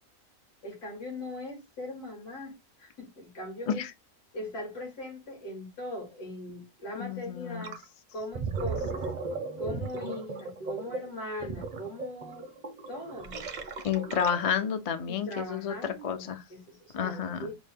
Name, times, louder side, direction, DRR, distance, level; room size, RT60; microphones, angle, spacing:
voice 1, 0.6-3.8 4.3-7.8 8.1-9.0 9.6-12.5 12.9-13.3 15.1-17.6, left 1 dB, 85° left, 2.8 m, -40 dB
voice 2, 7.0-7.7 13.8-15.7 16.0-16.4 16.9-17.5, left 8 dB, 70° left, 0.3 m, -30 dB
Gurgling, 7.6-7.8 8.2-14.7, right 4 dB, 50° right, 0.5 m, -36 dB
5.1 x 2.2 x 3.5 m
omnidirectional pair, 1.6 m